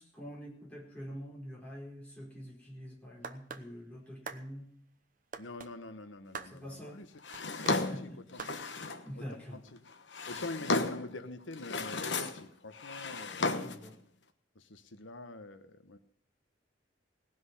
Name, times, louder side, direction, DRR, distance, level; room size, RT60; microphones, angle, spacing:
voice 1, 0.0-4.7 6.5-7.0 7.7-8.6 9.1-9.6 10.2-10.4 13.4-14.0, equal, 5° left, -4 dB, 4.7 m, -46 dB
sound 1, 3.2-3.7 4.3-4.4 5.3-5.7 6.3-6.5 7.3-7.8 8.4-8.6, right 5 dB, 45° right, 0.9 m, -43 dB
voice 2, 5.4-7.1 7.6-8.6 9.1-9.2 9.5-9.9 10.3-13.5 14.5-16.0, left 2 dB, 85° left, 9 dB, 1.1 m, -45 dB
Drawer open or close, 7.2-9.1 9.9-11.1 11.5-12.5 12.7-13.9, left 3 dB, 65° left, 1.3 m, -34 dB
18.5 x 6.2 x 9.6 m, 0.63 s
head